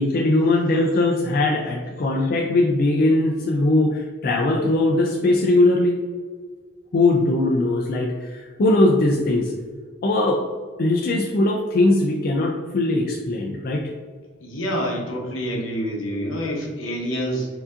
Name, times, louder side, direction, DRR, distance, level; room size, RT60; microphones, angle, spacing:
voice 1, 0.0-6.0 6.9-9.5 10.0-10.4 10.8-13.9, left 2 dB, 45° left, -1 dB, 0.4 m, -20 dB
voice 2, 14.4-17.5, equal, 80° left, -1 dB, 0.9 m, -27 dB
4.5 x 2.7 x 2.5 m, 1.5 s
head